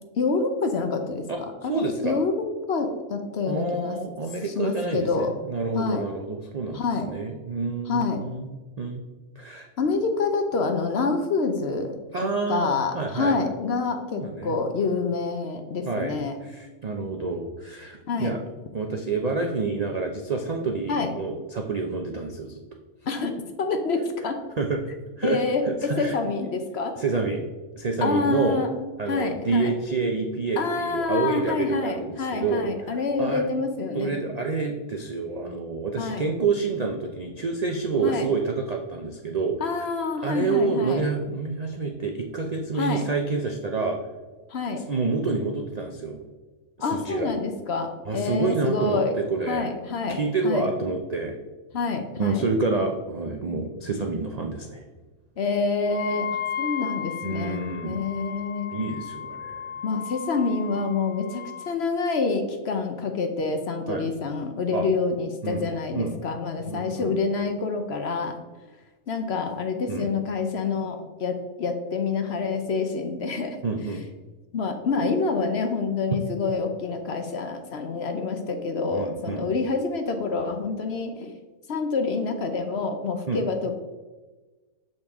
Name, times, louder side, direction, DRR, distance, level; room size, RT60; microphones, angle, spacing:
voice 1, 0.2-1.2 1.6-2.3 2.7-4.0 4.4-5.3 5.7-6.0 6.7-7.1 7.9-8.2 9.8-16.4 18.1-18.3 20.9-21.1 23.1-23.3 23.6-24.4 25.2-25.6 26.0-26.9 28.0-28.7 29.1-29.7 30.6-34.2 36.0-36.3 38.0-38.3 39.6-41.0 42.7-43.0 44.5-44.8 46.8-49.1 49.5-50.7 51.7-52.4 55.4-58.9 59.8-68.4 69.1-73.6 74.5-81.3 81.7-83.8, left 4 dB, 55° left, 5 dB, 0.8 m, -27 dB
voice 2, 1.3-2.2 3.5-9.0 9.4-9.7 12.1-13.4 14.1-14.6 15.9-18.4 18.7-22.6 24.6-24.8 25.2-25.4 25.7-26.2 27.0-27.5 27.8-28.6 29.0-33.5 33.9-39.6 40.2-44.0 44.8-46.2 46.8-47.3 48.1-49.7 50.1-51.4 52.2-54.8 57.2-58.1 58.7-59.7 63.9-64.0 64.7-64.9 65.4-65.6 65.9-66.1 66.7-67.1 69.9-70.1 73.6-74.0 78.9-79.5 83.3-83.4, right 4 dB, 65° right, 2 dB, 0.4 m, -28 dB
Wind instrument woodwind instrument, 55.9-61.8, left 8 dB, 80° left, 1.0 m, -35 dB
6.9 x 5.4 x 3.5 m, 1.2 s
omnidirectional pair, 1.5 m